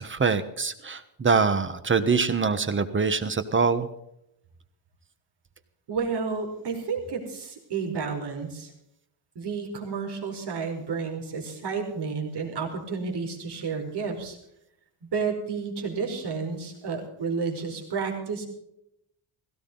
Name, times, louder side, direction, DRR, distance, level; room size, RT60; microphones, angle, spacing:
voice 1, 0.0-3.9, right 5 dB, 25° right, 12 dB, 1.2 m, -24 dB
voice 2, 5.9-8.7 9.3-14.4 15.1-18.5, right 5 dB, 55° right, 2 dB, 4.9 m, -31 dB
17.5 x 16.5 x 3.9 m, 0.79 s
cardioid pair, 135°, 49 cm